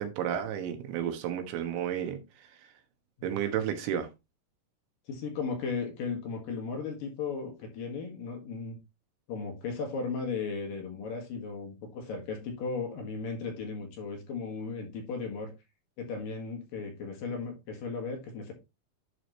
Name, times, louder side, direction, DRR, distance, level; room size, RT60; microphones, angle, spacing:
voice 1, 0.0-2.2 3.2-4.1, right 9 dB, 85° right, 3.5 m, -32 dB
voice 2, 5.1-8.8 9.3-15.5 16.0-18.5, left 4 dB, 60° left, 3.1 m, -36 dB
11.0 x 4.9 x 3.1 m
omnidirectional pair, 5.0 m